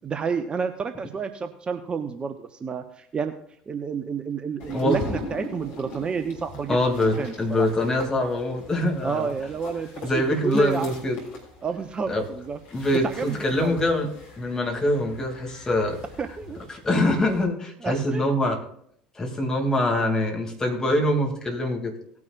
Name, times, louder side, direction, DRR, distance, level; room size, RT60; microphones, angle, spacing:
voice 1, 0.0-3.3 3.7-7.7 9.0-10.9 11.6-12.6 12.9-13.8 16.2-16.6 17.8-18.3, right 5 dB, 25° right, 9 dB, 0.8 m, -30 dB
sound 1, 4.6-17.4, left 2 dB, 55° left, 3.2 m, -41 dB
voice 2, 6.7-9.3 10.0-11.2 12.1-12.2 12.7-14.1 14.4-16.0 16.8-18.6 19.1-22.0, left 1 dB, 15° left, 1 dB, 2.8 m, -24 dB
18.5 x 9.6 x 2.5 m, 0.65 s
figure-of-eight pair, 65°, 4 cm